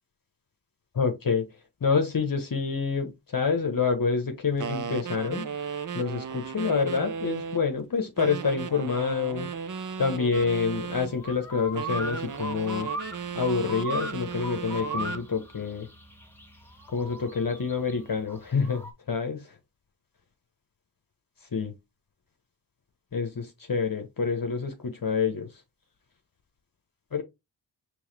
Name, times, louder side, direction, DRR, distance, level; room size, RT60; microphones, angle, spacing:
voice 1, 0.9-1.5 1.8-5.5 5.9-9.5 10.0-12.9 13.3-15.9 16.9-18.8 19.1-19.5 21.5-21.7 23.1-25.5 27.1-27.2, left 5 dB, 50° left, 1.0 m, -27 dB
sound 1, 4.6-7.7 8.2-11.1 11.7-15.3, right 6 dB, 45° right, 0.6 m, -35 dB
sound 2, 10.3-18.9, right 1 dB, 5° left, 1.4 m, -38 dB
4.7 x 3.3 x 3.3 m
cardioid pair, 45°, 43 cm